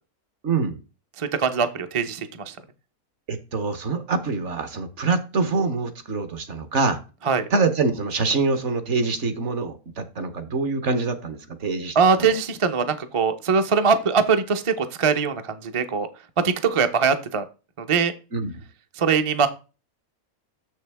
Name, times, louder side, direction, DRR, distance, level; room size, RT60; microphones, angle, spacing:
voice 1, 0.4-0.8 3.3-7.0 7.5-12.3 18.3-18.5, right 4 dB, 55° right, 10 dB, 1.2 m, -25 dB
voice 2, 1.2-2.6 7.2-7.5 11.9-16.1 16.4-17.4 17.8-18.1 19.0-19.5, right 5 dB, 35° right, 8 dB, 0.5 m, -22 dB
6.8 x 6.3 x 3.4 m, 0.32 s
omnidirectional pair, 1.5 m